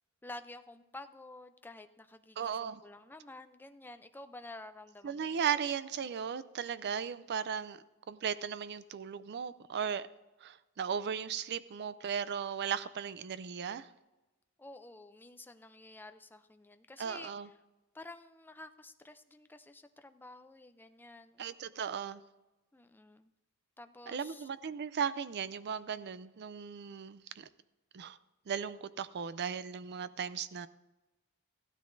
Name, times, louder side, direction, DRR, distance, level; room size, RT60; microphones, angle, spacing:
voice 1, 0.2-5.4 14.6-17.3 17.9-21.5 22.7-23.3 23.8-24.5, left 2 dB, 10° left, 8 dB, 0.4 m, -51 dB
voice 2, 2.4-2.8 5.0-10.1 10.4-13.9 17.0-17.5 21.4-22.2 24.1-27.5 27.9-28.2 28.5-30.7, right 7 dB, 50° right, 15 dB, 0.4 m, -36 dB
15.5 x 12.5 x 2.6 m, 1.1 s
head